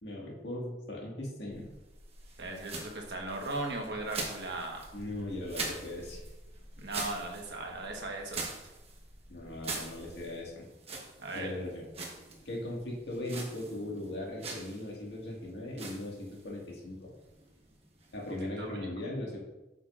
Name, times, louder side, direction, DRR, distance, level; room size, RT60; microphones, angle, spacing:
voice 1, 0.0-1.7 4.9-6.2 7.0-7.1 9.3-10.6 11.3-11.8 12.5-17.1 18.1-19.4, left 1 dB, 70° left, -2 dB, 1.9 m, -39 dB
sound 1, 1.5-18.8, right 3 dB, 35° right, 1.1 m, -44 dB
voice 2, 2.4-4.9 6.8-8.5 11.2-11.5 18.6-18.8, right 2 dB, 70° right, 1 dB, 1.3 m, -37 dB
8.0 x 6.6 x 2.5 m, 1.0 s
head